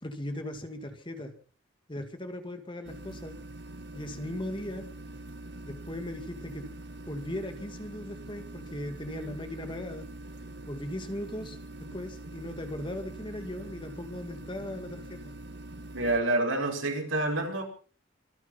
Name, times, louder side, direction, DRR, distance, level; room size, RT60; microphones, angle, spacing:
voice 1, 0.0-1.3 1.9-3.3 3.9-4.9 5.6-6.7 7.1-10.1 10.7-15.3, left 1 dB, 25° left, 7 dB, 2.1 m, -38 dB
sound 1, 2.8-16.2, right 2 dB, 55° right, 2.0 m, -44 dB
voice 2, 15.9-17.6, right 2 dB, 85° right, 2 dB, 5.2 m, -28 dB
25.0 x 9.2 x 5.7 m, 0.41 s
head